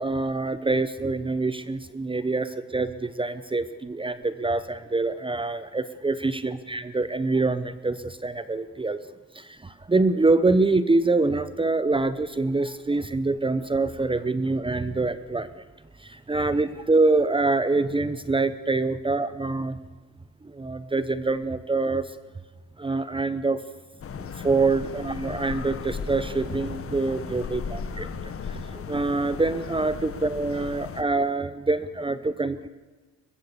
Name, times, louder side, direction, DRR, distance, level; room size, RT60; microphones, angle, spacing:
voice 1, 0.0-9.0 9.3-15.5 16.0-19.8 20.5-22.1 22.8-23.6 24.2-28.1 28.5-32.7, right 3 dB, 15° right, 13 dB, 0.9 m, -25 dB
sound 1, 24.0-31.0, left 6 dB, 50° left, 1.7 m, -36 dB
22.0 x 22.0 x 7.0 m, 1.3 s
cardioid pair, 90°, 30 cm